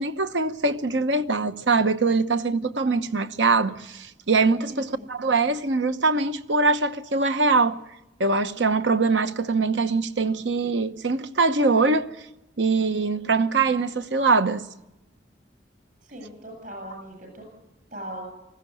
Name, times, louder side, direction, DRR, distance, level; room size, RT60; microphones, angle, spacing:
voice 1, 0.0-7.8 8.2-12.1 12.6-14.7, right 3 dB, 80° right, 1.0 m, -23 dB
voice 2, 4.7-5.1 16.0-17.4 17.9-18.2, right 1 dB, 50° right, 8.0 m, -39 dB
20.0 x 15.5 x 9.2 m
head